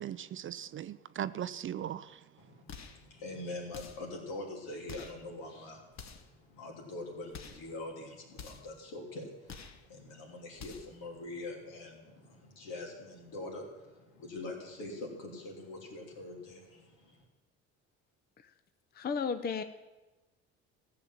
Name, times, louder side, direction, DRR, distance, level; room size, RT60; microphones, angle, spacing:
voice 1, 0.0-2.2, right 10 dB, 35° right, 15 dB, 0.4 m, -38 dB
voice 2, 2.4-17.2, left 2 dB, 75° left, -1 dB, 3.2 m, -44 dB
sound 1, 2.7-3.1 3.7-4.1 4.9-5.2 5.9-6.4 7.3-7.7 8.3-8.8 9.5-9.8 10.5-11.0, left 6 dB, 50° left, 1.4 m, -48 dB
voice 3, 18.9-19.6, left 6 dB, 25° left, 10 dB, 0.7 m, -34 dB
14.5 x 7.0 x 7.3 m, 1.2 s
hypercardioid pair, 70°, 36 cm